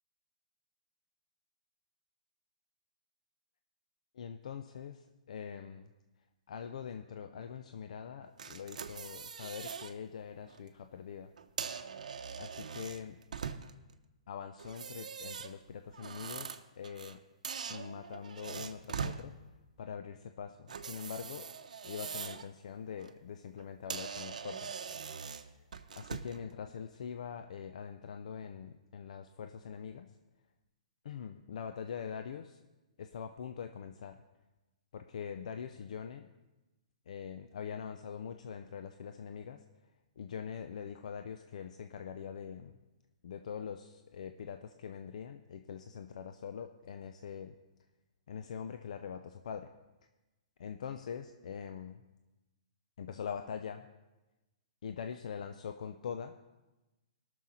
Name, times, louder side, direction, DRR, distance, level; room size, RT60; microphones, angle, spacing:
voice 1, 4.1-5.9 6.5-11.3 11.7-11.8 12.4-13.2 14.3-17.2 17.7-19.3 19.8-21.5 21.8-24.7 25.2-25.3 26.0-30.1 31.0-32.6 33.0-34.2 34.9-36.3 37.1-39.6 40.2-42.8 43.2-47.6 48.3-49.7 50.6-52.0 53.0-53.9 54.8-56.3, left 7 dB, 65° left, 7 dB, 0.6 m, -43 dB
sound 1, 8.4-9.9 10.4-10.6 11.4-13.9 14.6-17.2 17.4-19.2 20.7-22.5 22.9-23.1 23.6-23.7 23.9-26.4, right 6 dB, 80° right, 0.7 m, -42 dB
18.5 x 6.5 x 4.3 m, 1.1 s
hypercardioid pair, 140°, 4 cm